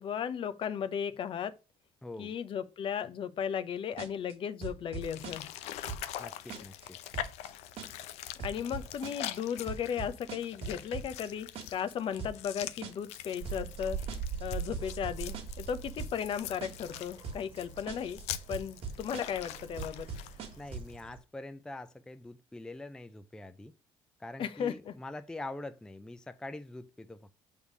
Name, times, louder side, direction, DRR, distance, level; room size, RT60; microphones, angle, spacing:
voice 1, 0.0-1.5 2.2-5.5 8.4-14.0 14.4-18.2 18.5-20.1 24.4-24.9, left 8 dB, 55° left, 0.8 m, -35 dB
voice 2, 2.0-2.3 6.2-7.0 20.6-23.7 24.2-27.3, left 2 dB, 5° left, 0.4 m, -44 dB
sound 1, 4.0-4.3 4.6-5.6 5.9-6.2 6.5-6.9 7.1-7.5 7.8-8.1 8.4-9.4 9.7-11.3 11.5-11.9 12.2-12.5 12.8-13.2 13.4-13.8 14.1-14.4 14.7-15.7 16.0-16.3 16.6-17.0 17.2-17.6 17.9-18.2 18.5-19.5 19.8-20.9, right 5 dB, 65° right, 1.5 m, -41 dB
sound 2, 5.0-21.0, left 12 dB, 90° left, 0.6 m, -44 dB
sound 3, 13.4-21.2, right 6 dB, 50° right, 1.6 m, -43 dB
6.5 x 3.5 x 6.0 m
cardioid pair, 120°, 11 cm